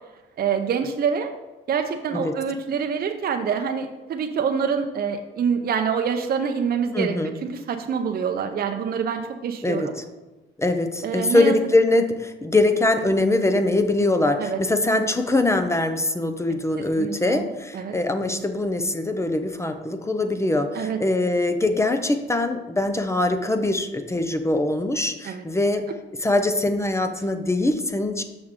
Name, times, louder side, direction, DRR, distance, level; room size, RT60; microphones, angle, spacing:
voice 1, 0.4-1.3 1.7-7.1 7.4-10.0 11.0-11.5 14.4-14.6 17.0-17.5 17.7-17.9 20.7-21.0 25.2-25.4, right 6 dB, 50° right, 5 dB, 0.6 m, -26 dB
voice 2, 6.9-7.3 9.6-10.0 10.6-25.8 26.2-28.2, left 2 dB, 15° left, 7 dB, 0.6 m, -22 dB
6.3 x 6.1 x 3.7 m, 1.1 s
cardioid pair, 90°, 20 cm